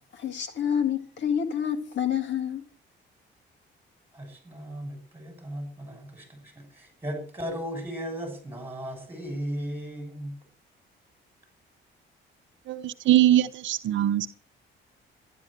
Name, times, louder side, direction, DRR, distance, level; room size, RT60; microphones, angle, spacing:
voice 1, 0.1-2.6, left 8 dB, 65° left, 1.8 m, -28 dB
voice 2, 4.1-10.3, equal, 10° right, 6.1 m, -36 dB
voice 3, 12.7-14.3, right 13 dB, 70° right, 0.8 m, -22 dB
12.0 x 11.0 x 6.5 m
cardioid pair, 150°, 20 cm